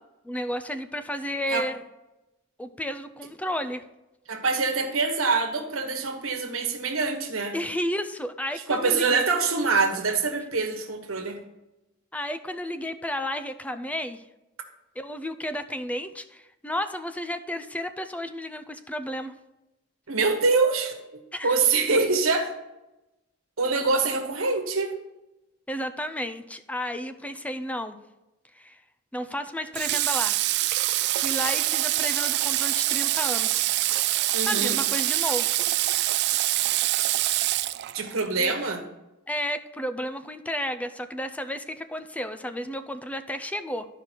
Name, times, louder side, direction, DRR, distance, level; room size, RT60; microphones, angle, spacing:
voice 1, 0.2-1.8 2.6-3.8 7.5-9.2 12.1-14.2 15.0-19.3 21.3-21.6 25.7-28.0 28.5-28.8 29.1-30.4 31.1-33.7 34.5-35.6 38.4-38.5 39.3-43.9, equal, 5° left, 10 dB, 0.5 m, -32 dB
voice 2, 4.3-7.5 8.7-11.4 20.1-21.0 21.4-22.5 23.6-25.0 34.3-34.8 37.9-38.8, right 4 dB, 90° right, 4 dB, 1.3 m, -25 dB
Water / Water tap faucet, 29.8-38.3, right 16 dB, 55° right, 0.3 m, -25 dB
12.5 x 5.0 x 4.5 m, 0.96 s
head